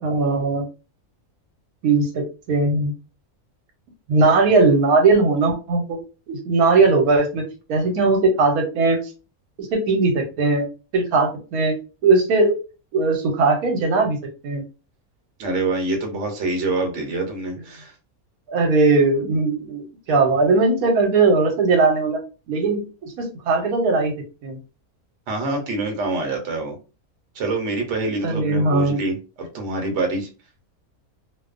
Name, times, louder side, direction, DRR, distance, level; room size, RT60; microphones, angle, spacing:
voice 1, 0.0-0.7 1.8-2.9 4.1-6.0 6.3-7.4 7.7-9.0 9.6-10.7 10.9-11.7 12.0-12.6 12.9-14.2 14.4-14.6 18.5-19.8 20.1-22.2 22.5-24.1 24.4-24.6 28.2-29.0, right 3 dB, 80° right, 3 dB, 1.1 m, -19 dB
voice 2, 15.4-17.9 25.3-26.8 27.3-30.3, right 2 dB, 60° right, 3 dB, 1.0 m, -25 dB
2.5 x 2.1 x 2.4 m, 0.31 s
omnidirectional pair, 1.5 m